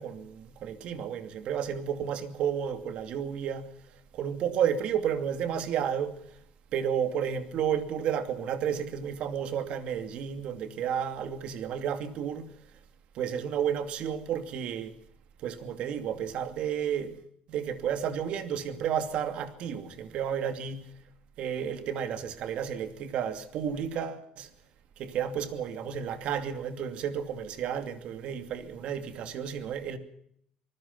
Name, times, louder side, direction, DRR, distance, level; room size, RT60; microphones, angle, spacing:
voice 1, 0.0-3.7 4.1-6.2 6.7-12.5 13.1-14.9 15.4-17.1 17.5-20.8 21.4-24.5 25.0-30.0, right 8 dB, 55° right, 2.6 m, -32 dB
26.0 x 19.5 x 5.6 m
cardioid pair, 165°, 2 cm